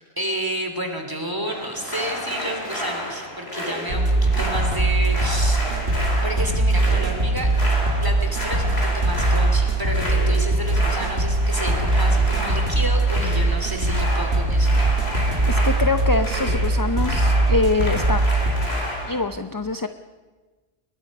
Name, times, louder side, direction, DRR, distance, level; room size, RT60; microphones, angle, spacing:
voice 1, 0.2-5.6 6.2-7.5 7.9-14.8, equal, 20° right, 4 dB, 3.1 m, -30 dB
sound 1, 1.5-19.2, left 1 dB, 85° left, 4.9 m, -31 dB
sound 2, 3.9-18.7, right 2 dB, 75° right, 2.5 m, -21 dB
voice 2, 15.5-18.2 19.1-19.9, left 3 dB, 25° left, 9 dB, 0.6 m, -24 dB
22.5 x 21.0 x 5.5 m, 1.3 s
omnidirectional pair, 1.0 m